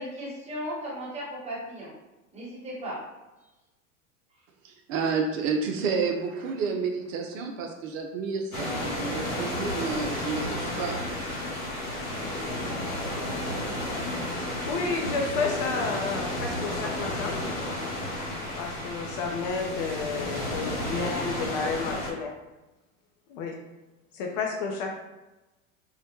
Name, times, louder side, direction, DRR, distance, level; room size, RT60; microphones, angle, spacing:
voice 1, 0.0-1.9 2.3-3.0, equal, 15° right, -6 dB, 1.1 m, -36 dB
voice 2, 4.6-11.0 11.3-11.5, right 5 dB, 65° right, 3 dB, 0.5 m, -30 dB
sound 1, 8.5-22.1, left 1 dB, 85° left, 0.8 m, -32 dB
voice 3, 14.7-17.4 18.6-22.3 23.3-23.6 24.1-25.0, left 4 dB, 45° left, 1 dB, 0.4 m, -31 dB
2.1 x 2.1 x 2.9 m, 1.1 s
hypercardioid pair, 85°, 41 cm